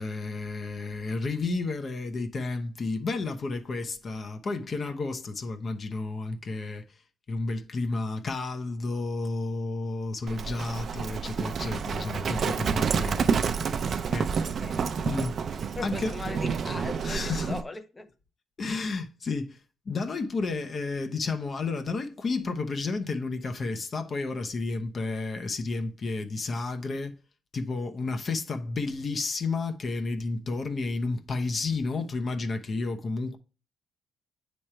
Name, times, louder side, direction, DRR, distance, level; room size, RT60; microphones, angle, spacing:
voice 1, 0.0-6.9 7.3-13.4 14.1-14.3 15.0-15.4 15.8-16.1 17.0-17.6 18.6-19.6 19.9-27.1 27.5-33.4, left 3 dB, 45° left, 0.9 m, -31 dB
Livestock farm animals working animals, 10.3-17.6, right 6 dB, 55° right, 0.6 m, -29 dB
voice 2, 14.2-14.8 15.7-18.1, left 3 dB, 20° left, 0.7 m, -39 dB
8.7 x 3.3 x 4.4 m
cardioid pair, 90°, 0 cm